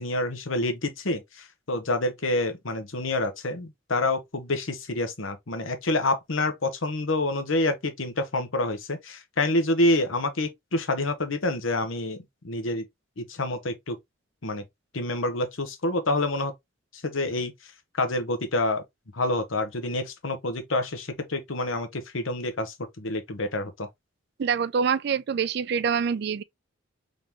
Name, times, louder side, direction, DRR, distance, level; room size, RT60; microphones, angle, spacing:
voice 1, 0.0-12.2 12.4-12.8 13.2-14.0 14.4-14.6 14.9-16.5 17.0-17.5 17.9-18.8 19.1-23.9, left 2 dB, 80° left, 1.0 m, -27 dB
voice 2, 24.4-26.4, right 6 dB, 55° right, 0.3 m, -25 dB
3.9 x 3.5 x 2.9 m
head